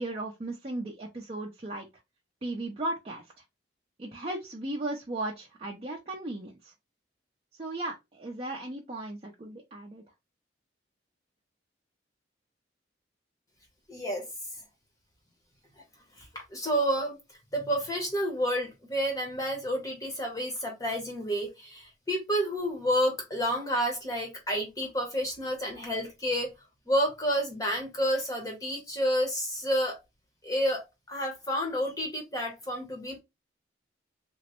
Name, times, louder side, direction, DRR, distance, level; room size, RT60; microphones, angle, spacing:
voice 1, 0.0-1.9 2.4-3.2 4.0-6.7 7.6-10.0, right 1 dB, 30° right, 0.5 m, -36 dB
voice 2, 13.9-14.3 16.3-17.2 17.5-26.5 26.9-30.0 30.4-33.2, equal, 20° left, 0.7 m, -30 dB
3.0 x 2.0 x 2.9 m
head